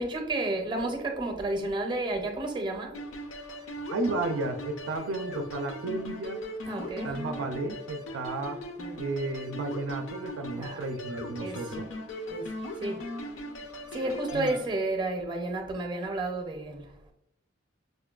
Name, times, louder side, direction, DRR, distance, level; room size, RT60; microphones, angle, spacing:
voice 1, 0.0-3.0 3.6-3.9 6.7-7.1 8.8-9.0 10.6-10.9 11.4-11.8 12.3-13.0 13.9-16.9, right 2 dB, 25° right, 0.5 m, -32 dB
sound 1, 2.9-14.7, equal, 70° left, 0.5 m, -39 dB
voice 2, 3.9-6.4 7.0-8.6 9.0-11.9 14.3-14.6, right 2 dB, 75° right, 0.4 m, -33 dB
5.2 x 2.2 x 2.3 m
head